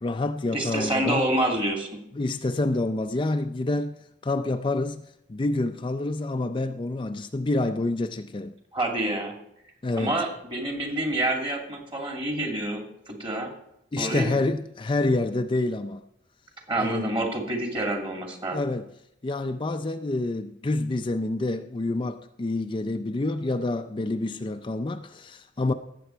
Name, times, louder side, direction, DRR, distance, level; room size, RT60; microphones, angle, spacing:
voice 1, 0.0-1.3 2.1-4.0 4.2-5.0 5.3-8.6 9.8-10.2 13.9-16.0 16.8-17.1 18.5-18.9 19.2-25.7, left 2 dB, 25° left, 0.4 m, -27 dB
voice 2, 0.5-1.9 8.7-9.3 10.0-13.5 14.0-14.3 16.7-18.6, right 1 dB, 30° right, 2.4 m, -27 dB
18.0 x 7.7 x 4.5 m
head